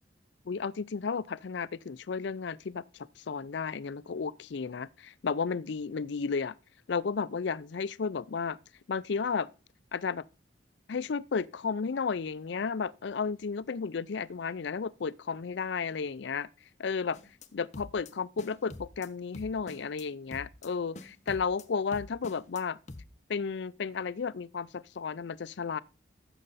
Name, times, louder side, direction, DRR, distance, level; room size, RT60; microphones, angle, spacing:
voice 1, 0.5-6.6 6.9-8.6 8.9-9.5 9.9-10.2 10.9-16.5 16.8-17.2 17.5-22.8 23.3-25.8, left 5 dB, 60° left, 0.4 m, -33 dB
sound 1, 17.1-17.5 17.7-18.1 18.4-19.1 19.3-20.0 20.3-20.7 21.0-21.7 21.9-22.6 22.9-23.1, left 2 dB, 35° left, 0.8 m, -45 dB
14.0 x 6.6 x 4.1 m
head